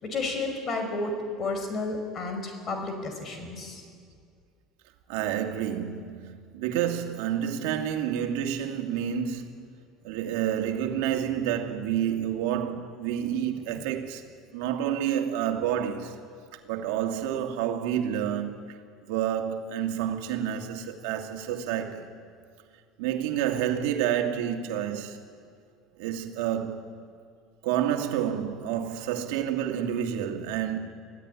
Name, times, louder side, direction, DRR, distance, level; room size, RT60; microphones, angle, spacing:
voice 1, 0.0-3.8, left 3 dB, 35° left, 5.1 m, -32 dB
voice 2, 5.1-9.7 10.0-14.2 14.5-16.2 16.6-18.8 19.1-22.1 23.0-25.2 26.0-27.1 27.6-30.8, right 10 dB, 80° right, 2.3 m, -29 dB
25.5 x 16.0 x 9.8 m
cardioid pair, 125°, 0 cm